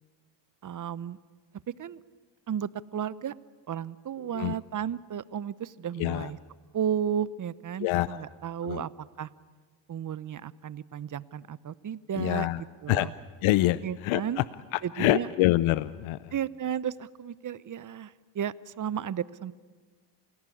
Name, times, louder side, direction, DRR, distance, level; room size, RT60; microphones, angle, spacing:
voice 1, 0.6-1.2 1.8-2.0 2.5-3.3 3.7-6.4 6.7-8.9 9.2-9.3 9.9-13.1 13.8-14.4 14.8-15.3 16.3-19.5, right 9 dB, 40° right, 18 dB, 0.9 m, -33 dB
voice 2, 6.0-6.3 7.8-8.2 8.6-8.8 12.1-12.6 12.9-13.1 13.4-14.4 14.7-16.3, left 16 dB, 70° left, 16 dB, 0.8 m, -26 dB
27.5 x 17.5 x 8.6 m, 1.5 s
supercardioid pair, 80°, 50 cm